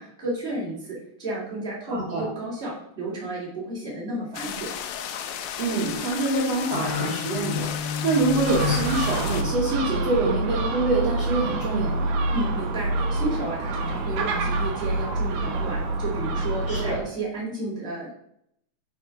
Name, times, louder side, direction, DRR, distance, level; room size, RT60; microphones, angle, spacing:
voice 1, 0.0-4.7 12.3-18.1, right 2 dB, ahead, -7 dB, 1.8 m, -32 dB
voice 2, 1.9-2.2 5.6-12.1 16.7-17.0, right 3 dB, 55° right, -6 dB, 1.9 m, -25 dB
sound 1, 4.3-9.4, left 9 dB, 80° left, 2.2 m, -34 dB
sound 2, 5.7-12.1, left 6 dB, 50° left, 2.1 m, -33 dB
Gull seagull, 8.5-17.0, right 2 dB, 75° right, 2.0 m, -27 dB
5.9 x 4.9 x 5.4 m, 0.75 s
omnidirectional pair, 4.7 m